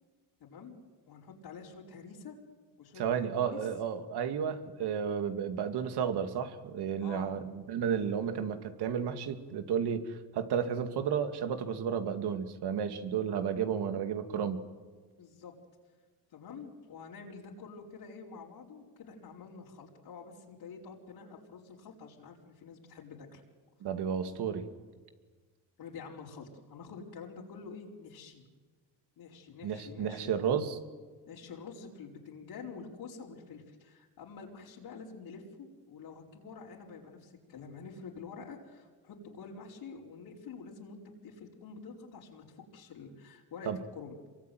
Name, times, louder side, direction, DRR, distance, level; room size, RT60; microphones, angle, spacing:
voice 1, 0.4-0.8 1.1-2.4 2.8-3.7 7.0-7.3 15.2-15.5 16.3-23.4 25.8-28.4 29.2-30.3 31.3-42.4 42.7-44.2, left 5 dB, 65° left, -3 dB, 4.8 m, -47 dB
voice 2, 3.0-14.6 23.8-24.7 29.6-30.8 43.7-43.8, right 7 dB, 70° right, 8 dB, 2.5 m, -32 dB
26.5 x 23.5 x 9.5 m, 1.4 s
supercardioid pair, 75°, 41 cm